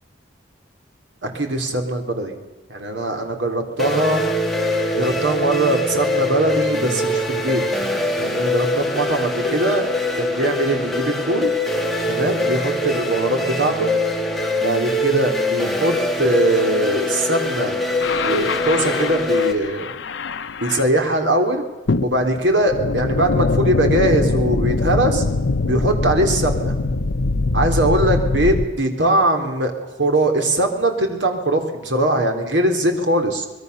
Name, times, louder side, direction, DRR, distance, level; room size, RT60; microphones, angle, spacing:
voice 1, 1.2-2.4 2.7-4.2 4.9-7.9 8.2-9.9 10.1-11.5 12.1-13.9 14.6-17.8 18.2-19.9 20.6-21.6 22.0-25.2 25.7-26.7 27.5-33.5, right 1 dB, 80° right, 4 dB, 3.6 m, -21 dB
sound 1, 3.8-19.5, left 1 dB, ahead, 2.8 m, -23 dB
sound 2, 18.0-21.2 21.9-28.7, left 3 dB, 85° left, 0.8 m, -22 dB
25.0 x 21.0 x 6.9 m, 1.2 s
head